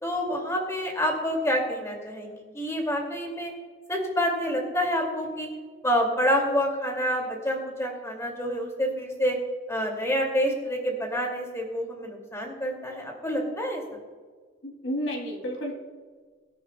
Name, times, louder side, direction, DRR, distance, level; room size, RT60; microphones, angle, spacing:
voice 1, 0.0-3.5 3.9-5.5 5.8-9.4 9.7-13.8, equal, 15° left, 1 dB, 2.5 m, -28 dB
voice 2, 14.6-15.7, equal, 80° left, 1 dB, 3.0 m, -31 dB
23.5 x 9.9 x 2.3 m, 1.5 s
head